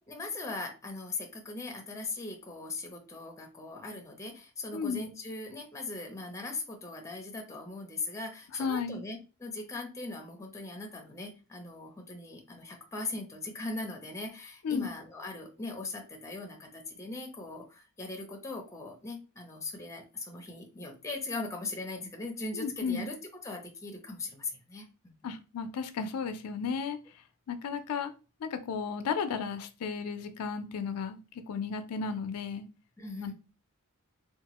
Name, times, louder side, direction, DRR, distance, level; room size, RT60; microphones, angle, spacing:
voice 1, 0.1-23.2 23.4-25.3 33.0-33.3, left 2 dB, 15° left, 2 dB, 0.6 m, -40 dB
voice 2, 4.7-5.0 8.5-9.0 14.6-14.9 22.5-23.1 25.2-27.0 27.5-28.1 28.4-32.6 33.2-33.3, left 5 dB, 90° left, 9 dB, 0.4 m, -34 dB
2.9 x 2.3 x 2.9 m, 0.32 s
head